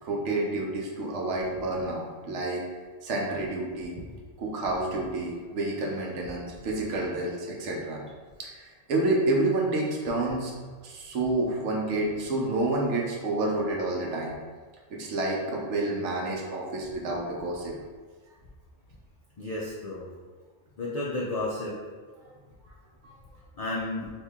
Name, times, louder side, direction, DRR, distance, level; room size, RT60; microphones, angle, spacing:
voice 1, 0.0-2.6 3.0-4.0 4.4-8.0 8.4-10.5 10.8-14.4 14.9-17.7 22.2-22.3 23.0-23.1, right 2 dB, 75° right, -1 dB, 1.0 m, -29 dB
voice 2, 19.4-20.1 20.8-21.8 23.5-24.1, left 2 dB, 70° left, -5 dB, 0.3 m, -32 dB
2.8 x 2.6 x 3.5 m, 1.5 s
omnidirectional pair, 1.2 m